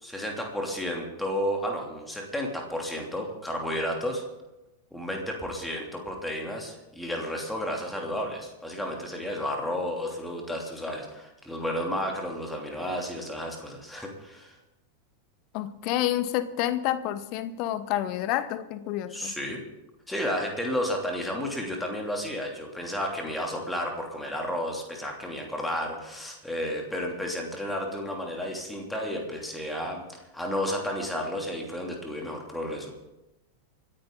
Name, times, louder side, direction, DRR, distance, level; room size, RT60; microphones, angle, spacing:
voice 1, 0.0-4.2 4.9-14.5 19.1-19.6 20.1-32.9, equal, 5° left, 1 dB, 3.0 m, -32 dB
voice 2, 15.5-19.3, left 13 dB, 45° left, 14 dB, 0.9 m, -29 dB
27.5 x 10.0 x 3.9 m, 0.98 s
figure-of-eight pair, 90°, 0 cm